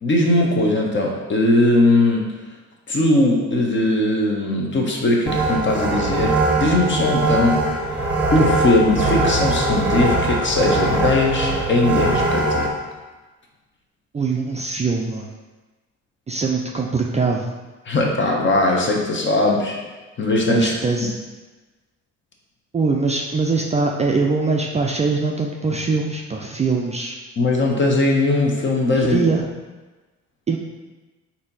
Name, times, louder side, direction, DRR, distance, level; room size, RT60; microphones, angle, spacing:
voice 1, 0.0-2.3 2.9-7.6 8.3-12.7 17.9-19.8 20.2-20.7 21.0-21.1 27.4-29.2, left 2 dB, 40° left, 0 dB, 0.9 m, -19 dB
sound 1, 5.3-12.7, right 2 dB, 5° right, 0.8 m, -21 dB
voice 2, 14.1-15.3 16.3-17.5 20.5-21.1 22.7-27.2 28.9-29.4 30.5-30.6, right 4 dB, 25° right, 0 dB, 0.4 m, -22 dB
4.2 x 2.8 x 4.0 m, 1.2 s
cardioid pair, 90°, 30 cm